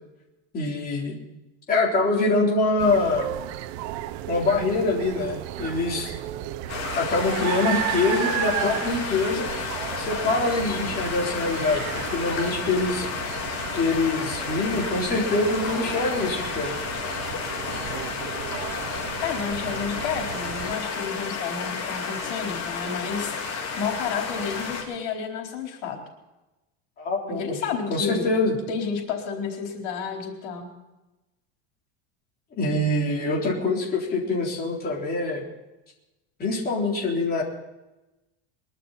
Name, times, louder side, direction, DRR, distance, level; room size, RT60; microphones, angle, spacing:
voice 1, 0.5-1.2 1.7-3.3 4.3-6.2 6.9-9.5 10.0-13.1 13.7-16.7 27.0-27.6 27.9-28.6 32.6-35.4 36.4-37.4, left 3 dB, 25° left, -2 dB, 3.9 m, -24 dB
sound 1, 2.8-20.8, right 13 dB, 55° right, 1.0 m, -34 dB
sound 2, 6.7-24.8, left 5 dB, 45° left, 4.1 m, -32 dB
voice 2, 19.2-26.0 27.4-28.2 28.7-30.7, left 6 dB, 90° left, 2 dB, 4.4 m, -31 dB
23.0 x 12.0 x 4.3 m, 1.0 s
cardioid pair, 160°, 35 cm